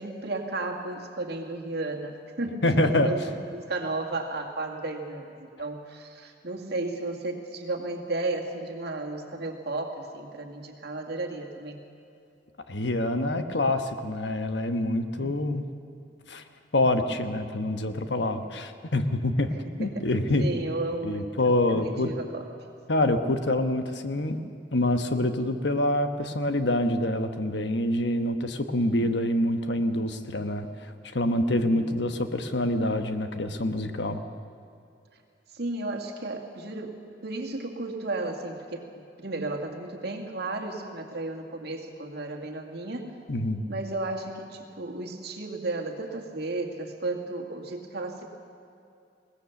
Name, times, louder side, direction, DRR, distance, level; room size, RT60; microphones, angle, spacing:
voice 1, 0.0-11.8 15.2-15.7 19.6-20.1 20.4-22.5 31.6-32.0 35.5-38.9 39.2-43.1 43.7-48.3, right 2 dB, 60° right, 2 dB, 2.2 m, -34 dB
voice 2, 2.6-3.1 12.7-15.6 16.3-16.4 16.7-19.5 19.8-20.5 21.0-22.1 22.9-24.4 24.7-30.7 31.1-34.2 43.3-43.6, left 1 dB, 70° left, 8 dB, 1.2 m, -26 dB
21.5 x 18.5 x 7.1 m, 2.5 s
head